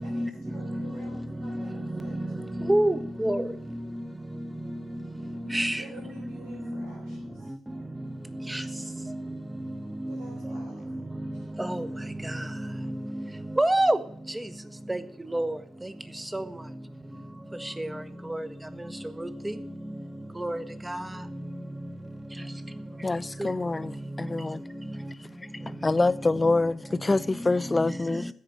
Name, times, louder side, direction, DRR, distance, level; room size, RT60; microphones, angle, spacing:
voice 1, 0.0-2.2 5.3-7.5 10.1-10.9, right 1 dB, 75° right, 4.2 m, -49 dB
voice 2, 2.7-3.5 5.5-5.8 8.5-8.7 10.0-10.2 10.5-10.6 11.6-11.9 13.6-14.0 14.9-15.0 15.3-15.6 16.3-16.4 17.8-17.9 18.3-18.5 19.2-19.5 20.4-21.0 23.4-23.5, right 1 dB, 10° right, 1.0 m, -26 dB
voice 3, 23.0-24.6 25.7-28.3, left 3 dB, 20° left, 0.4 m, -26 dB
15.0 x 5.0 x 9.0 m
figure-of-eight pair, 45°, 0 cm